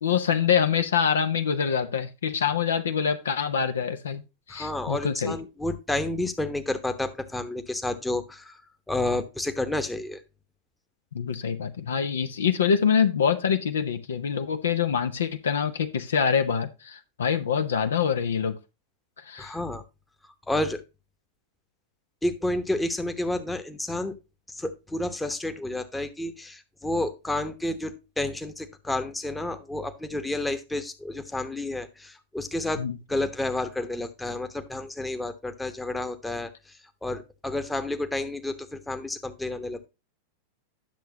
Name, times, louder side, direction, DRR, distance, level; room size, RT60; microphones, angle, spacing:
voice 1, 0.0-4.2 4.5-5.4 11.1-18.5 19.3-19.6 32.8-33.0, left 7 dB, 65° left, 9 dB, 0.8 m, -25 dB
voice 2, 4.5-8.6 8.9-10.2 19.4-19.8 20.5-20.8 22.2-24.2 24.5-39.9, left 2 dB, 5° left, 8 dB, 1.0 m, -30 dB
10.5 x 6.8 x 2.9 m, 0.27 s
figure-of-eight pair, 90°, 0 cm